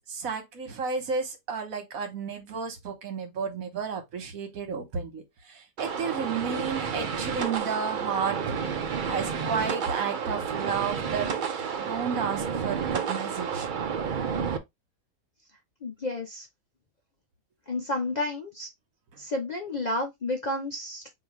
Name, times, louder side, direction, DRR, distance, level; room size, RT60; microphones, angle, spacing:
voice 1, 0.0-8.5 9.0-11.3 11.8-13.7, right 6 dB, 75° right, 1.5 m, -32 dB
sound 1, 5.8-14.6, right 6 dB, 55° right, 0.5 m, -31 dB
voice 2, 15.8-16.5 17.7-18.7 19.2-21.1, left 2 dB, 45° left, 0.5 m, -31 dB
5.1 x 2.7 x 3.0 m
omnidirectional pair, 1.5 m